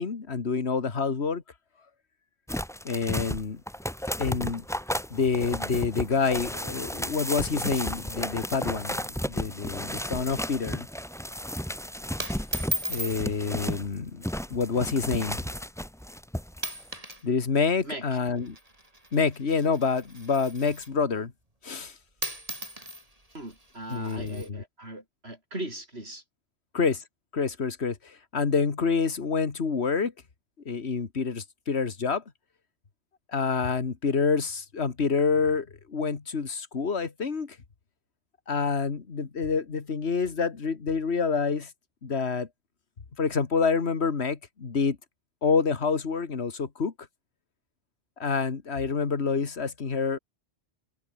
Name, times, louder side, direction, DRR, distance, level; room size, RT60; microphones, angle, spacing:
voice 1, 0.0-1.4 2.8-3.6 4.2-4.6 5.1-10.9 12.9-15.4 17.2-18.6 19.1-21.3 21.6-21.9 23.9-24.6 26.7-27.0 27.3-30.1 30.7-32.2 33.3-37.6 38.5-41.7 42.0-42.5 43.2-45.0 45.4-46.9 48.2-50.2, left 5 dB, 65° left, 2.1 m, -27 dB
sound 1, 2.5-13.9 14.2-16.6 16.9-17.0, equal, 5° left, 1.0 m, -33 dB
sound 2, 7.3-8.4 8.7-8.8 9.1-9.4 9.7-10.1 10.4-10.7 11.4-11.7 12.2-13.2 14.2-14.5 15.2-15.3 16.0-16.2 16.5-17.3 17.5-21.0 21.9-22.0 22.2-24.5, right 1 dB, 30° right, 5.7 m, -38 dB
voice 2, 23.3-26.2, right 1 dB, 60° right, 7.1 m, -39 dB
omnidirectional pair, 1.2 m